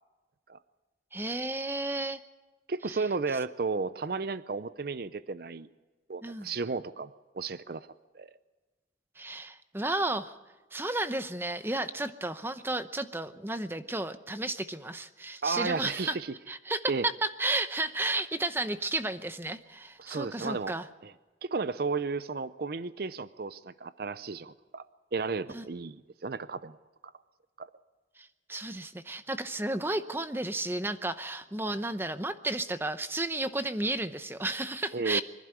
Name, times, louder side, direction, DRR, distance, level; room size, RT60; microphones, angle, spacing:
voice 1, 1.1-2.2 2.9-3.0 6.2-6.5 9.2-10.4 10.7-16.2 16.5-20.9 25.5-25.6 28.2-35.2, right 2 dB, 10° right, 11 dB, 0.8 m, -33 dB
voice 2, 2.7-5.7 6.1-7.1 7.3-7.9 8.1-8.3 15.4-16.3 16.9-17.0 20.0-20.7 21.0-21.1 21.4-24.8 25.1-26.8 27.6-27.7 34.9-35.2, right 4 dB, 55° right, 15 dB, 0.5 m, -33 dB
25.5 x 11.5 x 9.6 m, 1.2 s
head